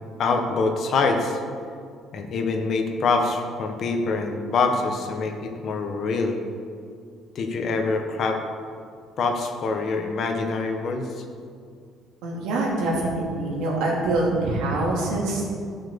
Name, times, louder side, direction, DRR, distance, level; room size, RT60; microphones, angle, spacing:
voice 1, 0.2-1.4 2.1-6.4 7.3-8.4 9.2-11.2, left 4 dB, 55° left, 4 dB, 1.4 m, -25 dB
voice 2, 12.2-15.5, right 2 dB, 80° right, -3 dB, 2.9 m, -25 dB
12.0 x 6.2 x 7.0 m, 2.2 s
cardioid pair, 100°, 0 cm